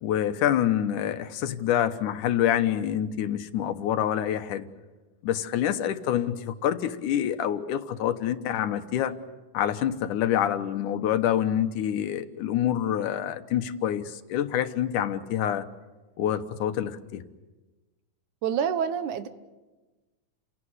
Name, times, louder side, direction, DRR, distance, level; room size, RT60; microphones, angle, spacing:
voice 1, 0.0-4.7 5.2-9.2 9.5-15.7 16.2-17.2, left 10 dB, 80° left, 9 dB, 2.6 m, -26 dB
voice 2, 18.4-19.3, right 8 dB, 75° right, 11 dB, 2.6 m, -27 dB
29.5 x 17.5 x 9.8 m, 1.2 s
omnidirectional pair, 3.6 m